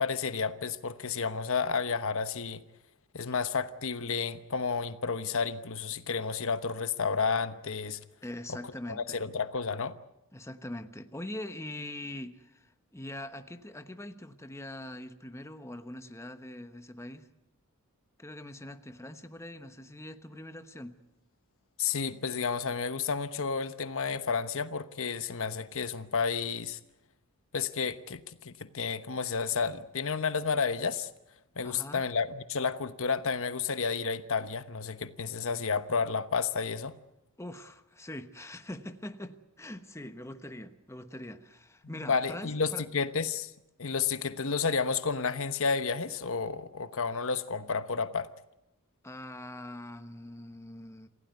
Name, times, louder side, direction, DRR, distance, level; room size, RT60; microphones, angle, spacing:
voice 1, 0.0-2.6 3.1-8.0 8.5-8.6 8.9-9.9 21.8-26.8 27.5-31.1 31.6-36.9 41.8-43.5 43.8-48.3, left 5 dB, 65° left, 11 dB, 1.1 m, -31 dB
voice 2, 8.2-9.2 10.3-17.3 18.2-20.9 31.6-32.0 37.4-42.8 49.0-51.1, left 1 dB, 15° left, 8 dB, 1.1 m, -43 dB
27.5 x 16.0 x 9.4 m, 0.90 s
head